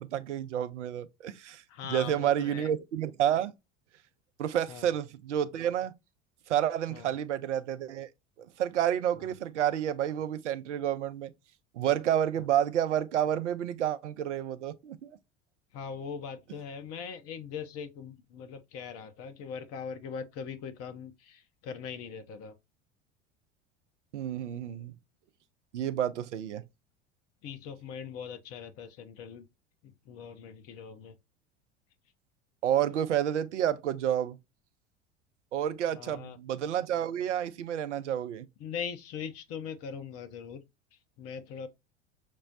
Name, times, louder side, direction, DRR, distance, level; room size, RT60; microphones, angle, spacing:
voice 1, 0.0-1.6 1.9-3.5 4.4-5.9 6.5-8.1 8.4-11.3 11.7-15.2 24.1-24.9 25.7-26.6 32.6-34.4 35.5-38.5, right 10 dB, 80° right, 0.5 m, -30 dB
voice 2, 1.7-2.7 4.7-4.9 6.9-7.1 9.2-9.3 12.4-12.5 15.7-22.5 27.4-29.5 29.8-31.2 35.9-36.4 38.6-40.6 41.2-41.7, left 7 dB, 45° left, 0.7 m, -41 dB
6.0 x 2.0 x 2.5 m
figure-of-eight pair, 75°, 36 cm